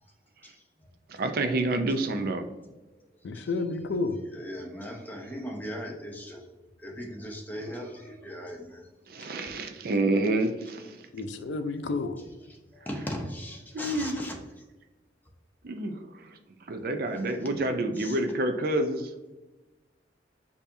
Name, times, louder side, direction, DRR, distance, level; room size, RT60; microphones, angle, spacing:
voice 1, 0.4-0.9 2.9-3.0 3.3-3.6 4.2-6.4 6.8-8.9 9.2-9.3 11.9-14.4 17.1-17.2 18.0-18.2, equal, 10° left, 0 dB, 0.7 m, -39 dB
voice 2, 1.1-2.5 9.1-11.1 13.7-14.2 15.6-16.4 16.7-19.1, right 2 dB, 50° right, 6 dB, 0.5 m, -28 dB
voice 3, 3.2-4.2 11.1-12.2, left 3 dB, 75° left, 9 dB, 0.4 m, -30 dB
6.7 x 2.8 x 2.6 m, 1.1 s
head